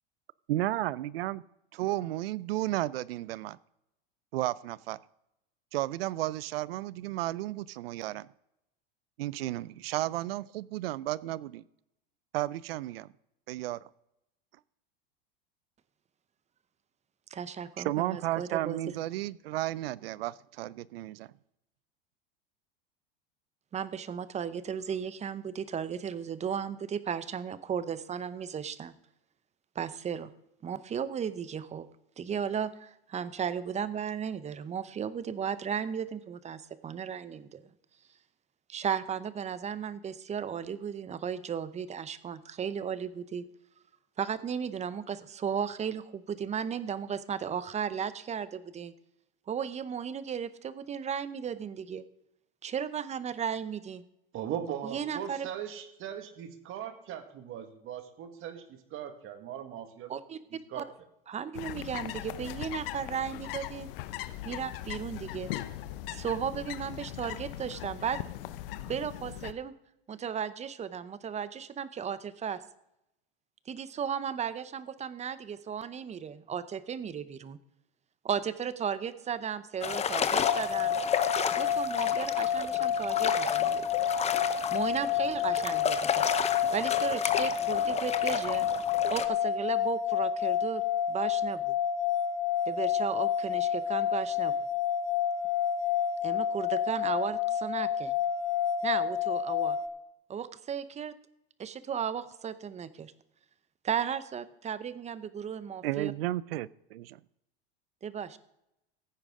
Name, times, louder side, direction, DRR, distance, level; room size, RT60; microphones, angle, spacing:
voice 1, 0.5-1.4 1.7-3.6 4.3-5.0 5.7-8.3 9.2-11.6 12.3-13.1 13.5-13.8 17.8-21.3 105.8-107.2, right 15 dB, 80° right, 21 dB, 0.5 m, -33 dB
voice 2, 17.3-18.8 23.7-28.9 29.7-30.3 30.6-31.9 32.2-37.6 38.7-43.4 44.2-48.9 49.5-52.0 52.6-54.0 54.8-55.5 60.1-60.4 60.7-60.8 61.3-63.9 64.4-65.5 66.1-68.2 68.9-69.7 70.1-72.6 73.7-77.6 78.2-80.9 81.5-83.8 84.7-88.7 89.1-90.8 91.1-91.8 92.7-94.5 96.2-98.2 98.8-99.8 100.3-101.1 101.6-103.1 103.8-106.1 108.0-108.4, right 7 dB, 25° right, 15 dB, 0.7 m, -35 dB
voice 3, 54.3-60.2 60.7-60.9, right 9 dB, 45° right, 8 dB, 1.7 m, -39 dB
sound 1, 61.6-69.5, left 14 dB, 70° left, 0.8 m, -39 dB
sound 2, 79.8-89.3, left 7 dB, 20° left, 0.8 m, -32 dB
sound 3, 80.3-99.8, left 9 dB, 50° left, 1.2 m, -29 dB
15.5 x 9.0 x 3.7 m, 0.84 s
hypercardioid pair, 100°, 29 cm